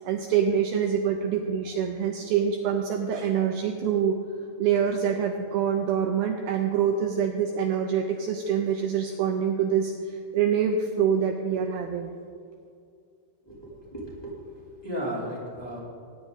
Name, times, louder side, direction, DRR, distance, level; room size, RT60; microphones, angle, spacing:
voice 1, 0.0-4.2 4.6-12.1, right 8 dB, 80° right, 4 dB, 2.3 m, -25 dB
voice 2, 13.4-14.3 14.8-15.8, equal, 5° left, -8 dB, 3.1 m, -35 dB
20.0 x 9.8 x 4.0 m, 2.3 s
omnidirectional pair, 4.8 m